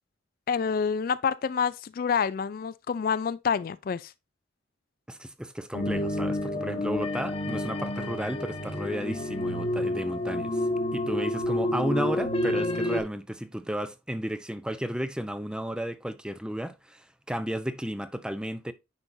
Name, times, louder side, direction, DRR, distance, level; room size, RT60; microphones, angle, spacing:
voice 1, 0.5-4.1, left 6 dB, 50° left, 0.3 m, -27 dB
voice 2, 5.1-18.7, equal, 5° right, 0.5 m, -33 dB
sound 1, 5.7-13.0, left 1 dB, 30° left, 1.1 m, -29 dB
9.8 x 5.2 x 2.6 m
head